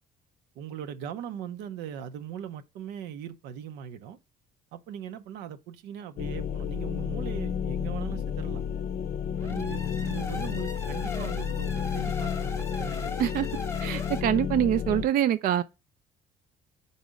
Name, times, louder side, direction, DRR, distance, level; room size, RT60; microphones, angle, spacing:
voice 1, 0.5-4.2 4.7-8.7 9.4-13.1, right 9 dB, 90° right, 0.7 m, -40 dB
sound 1, 6.2-15.1, left 7 dB, 60° left, 0.6 m, -31 dB
sound 2, 9.3-14.2, left 3 dB, 15° left, 0.9 m, -39 dB
voice 2, 13.8-15.6, right 11 dB, 60° right, 0.4 m, -25 dB
4.6 x 4.1 x 5.0 m
cardioid pair, 110°, 17 cm